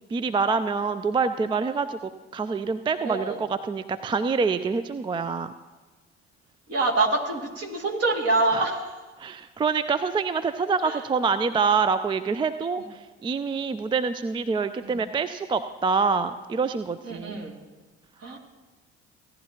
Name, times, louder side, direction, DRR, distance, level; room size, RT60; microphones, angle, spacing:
voice 1, 0.1-5.5 8.5-8.6 9.2-17.4, right 5 dB, 15° right, 12 dB, 0.3 m, -26 dB
voice 2, 3.0-3.4 6.7-9.0 10.8-11.0 14.8-15.0 17.0-17.6 18.2-18.4, right 2 dB, 45° right, 0 dB, 2.2 m, -26 dB
17.0 x 10.5 x 2.8 m, 1.2 s
figure-of-eight pair, 55°, 35 cm